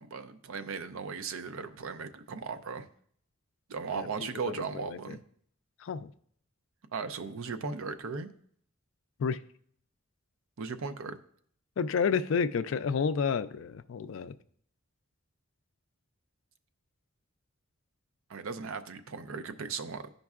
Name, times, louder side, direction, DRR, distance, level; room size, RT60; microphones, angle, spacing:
voice 1, 0.1-2.9 3.7-5.2 6.9-8.3 10.6-11.2 18.3-20.1, right 5 dB, 75° right, 9 dB, 0.5 m, -37 dB
voice 2, 4.7-5.2 5.8-6.1 9.2-9.4 11.8-14.4, left 6 dB, 65° left, 11 dB, 0.3 m, -30 dB
13.0 x 5.2 x 2.4 m, 0.62 s
head